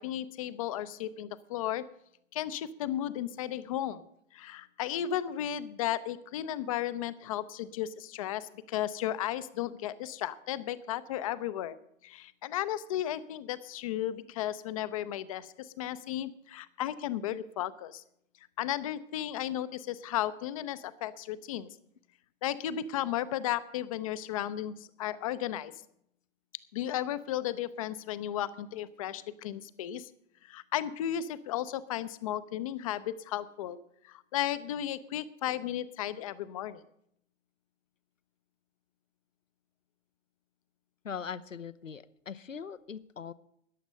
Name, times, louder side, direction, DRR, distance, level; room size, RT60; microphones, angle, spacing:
voice 1, 0.0-1.8 2.3-4.0 4.3-11.8 12.0-18.0 18.6-21.7 22.4-25.7 26.7-30.1 30.5-33.8 34.1-36.8, left 11 dB, 30° left, 15 dB, 0.6 m, -34 dB
voice 2, 41.0-43.3, left 7 dB, 80° left, 15 dB, 0.8 m, -41 dB
14.0 x 10.5 x 5.4 m, 0.72 s
figure-of-eight pair, 115°, 38 cm